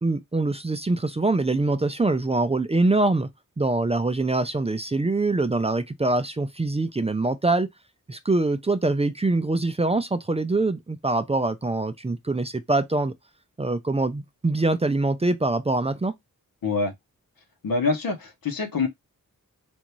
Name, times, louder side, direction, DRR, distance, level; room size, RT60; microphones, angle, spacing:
voice 1, 0.0-3.3 3.6-7.7 8.1-13.1 13.6-16.1, right 2 dB, 20° right, 0.4 m, -24 dB
voice 2, 16.6-16.9 17.6-18.9, left 4 dB, 80° left, 1.0 m, -25 dB
3.5 x 2.6 x 3.0 m
cardioid pair, 55°, 34 cm